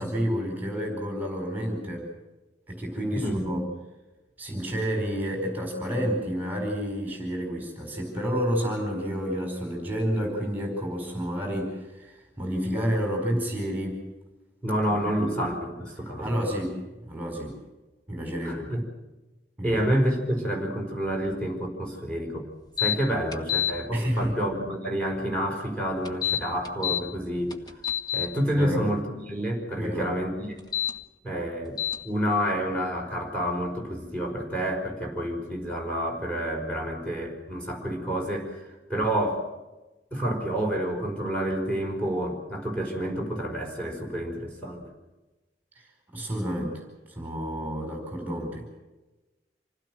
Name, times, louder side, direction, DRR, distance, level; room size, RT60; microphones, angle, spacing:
voice 1, 0.0-2.1 2.7-3.6 4.4-14.0 15.2-15.3 16.2-17.6 18.1-18.7 19.6-19.8 23.9-24.3 28.6-28.8 29.8-30.1 45.8-45.9 46.1-48.7, equal, 10° right, 2 dB, 4.8 m, -30 dB
voice 2, 14.6-16.3 18.4-18.8 19.6-22.5 22.8-27.6 28.1-30.5 31.2-31.8 32.0-39.4 40.1-44.8, equal, 5° left, 1 dB, 5.3 m, -29 dB
sound 1, 22.8-23.0 23.3-23.7 26.0-27.0 27.5-28.3 30.6-30.9 31.8-32.0, left 11 dB, 25° left, 1.5 m, -26 dB
27.0 x 16.5 x 7.7 m, 1.1 s
head